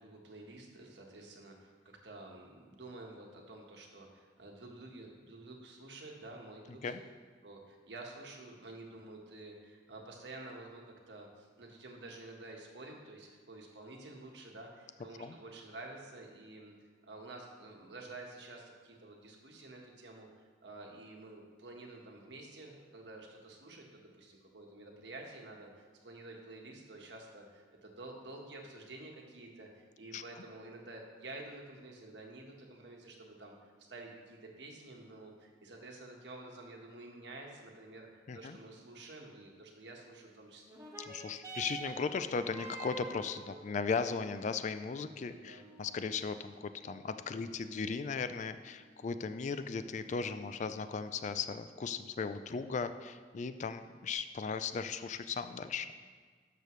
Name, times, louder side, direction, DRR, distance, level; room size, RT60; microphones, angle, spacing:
voice 1, 0.0-6.9 7.4-16.7 17.0-40.6 45.3-45.6, right 2 dB, 80° right, 0 dB, 1.4 m, -50 dB
sound 1, 40.6-49.6 50.4-50.5, right 2 dB, 15° right, 1.3 m, -50 dB
voice 2, 41.1-55.9, left 5 dB, 45° left, 11 dB, 0.4 m, -37 dB
11.5 x 6.6 x 3.1 m, 1.5 s
head